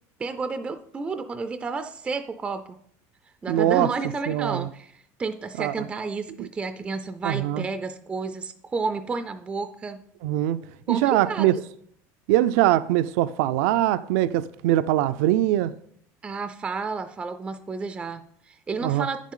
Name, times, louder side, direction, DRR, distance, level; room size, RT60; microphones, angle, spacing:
voice 1, 0.2-2.8 3.4-10.0 10.9-11.6 16.2-19.3, right 4 dB, 15° right, 0.3 m, -31 dB
voice 2, 3.5-3.9 4.3-4.7 5.6-5.9 6.4-6.5 7.2-7.7 10.2-10.6 10.9-11.6 12.3-15.7 18.8-19.1, right 13 dB, 80° right, 0.4 m, -22 dB
9.8 x 7.3 x 3.8 m
cardioid pair, 165°, 8 cm